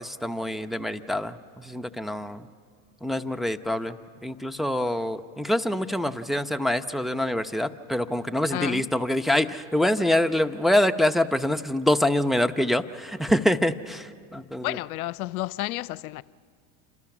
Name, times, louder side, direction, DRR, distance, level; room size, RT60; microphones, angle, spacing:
voice 1, 0.0-2.5 3.0-4.0 4.2-14.8, left 1 dB, ahead, 0.9 m, -25 dB
voice 2, 8.5-8.9 14.6-16.2, left 16 dB, 90° left, 0.6 m, -31 dB
28.0 x 26.0 x 6.1 m
hypercardioid pair, 90°, 42 cm